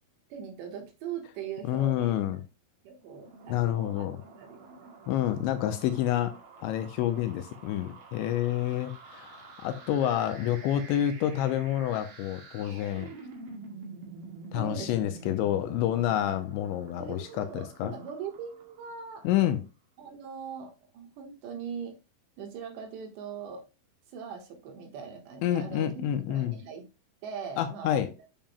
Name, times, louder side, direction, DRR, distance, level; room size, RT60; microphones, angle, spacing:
voice 1, 0.3-2.4 2.8-4.0 4.4-4.9 7.0-7.2 14.5-15.4 17.0-19.3 20.0-21.9 22.4-23.6 24.1-26.9 27.2-28.0, right 7 dB, 70° right, 3.2 m, -41 dB
voice 2, 1.7-2.4 3.5-4.2 5.1-6.4 6.6-13.1 14.5-17.9 19.2-19.6 25.4-26.6 27.6-28.1, left 11 dB, 85° left, 2.8 m, -28 dB
sound 1, 3.1-19.4, right 4 dB, 55° right, 3.0 m, -48 dB
8.8 x 7.4 x 2.2 m
omnidirectional pair, 5.6 m